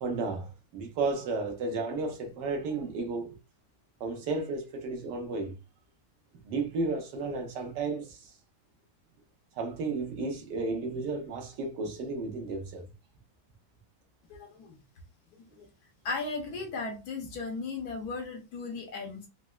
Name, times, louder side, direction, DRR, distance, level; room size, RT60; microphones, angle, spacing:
voice 1, 0.0-3.3 4.0-5.5 6.4-8.2 9.6-12.8, right 3 dB, 75° right, 1.4 m, -33 dB
voice 2, 14.3-14.8 15.6-15.7 16.0-19.3, left 3 dB, 70° left, 1.1 m, -36 dB
4.0 x 2.1 x 2.3 m
omnidirectional pair, 1.9 m